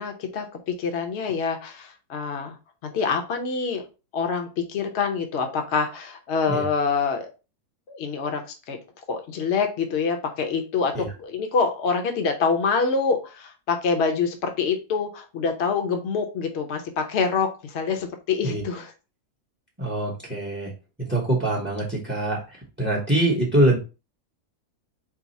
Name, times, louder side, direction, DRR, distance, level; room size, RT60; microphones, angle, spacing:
voice 1, 0.0-2.6 2.8-3.8 4.1-7.3 7.9-8.8 9.1-18.9, left 5 dB, 55° left, 5 dB, 0.9 m, -26 dB
voice 2, 19.8-20.7 21.1-23.8, right 1 dB, 10° right, 0 dB, 0.6 m, -24 dB
4.7 x 2.0 x 4.0 m, 0.31 s
omnidirectional pair, 1.6 m